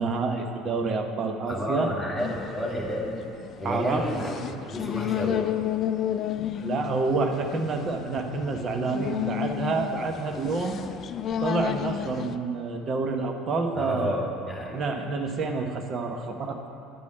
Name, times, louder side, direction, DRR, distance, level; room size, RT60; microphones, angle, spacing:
voice 1, 0.0-1.9 3.6-4.0 6.6-10.8 11.4-14.1 14.7-16.6, right 3 dB, 40° right, 4 dB, 1.0 m, -28 dB
voice 2, 1.5-3.2 3.6-5.5 13.7-14.8, equal, ahead, -5 dB, 2.1 m, -30 dB
sound 1, 2.2-12.4, left 10 dB, 40° left, 0.4 m, -32 dB
9.4 x 5.1 x 8.1 m, 2.9 s
figure-of-eight pair, 65°, 0 cm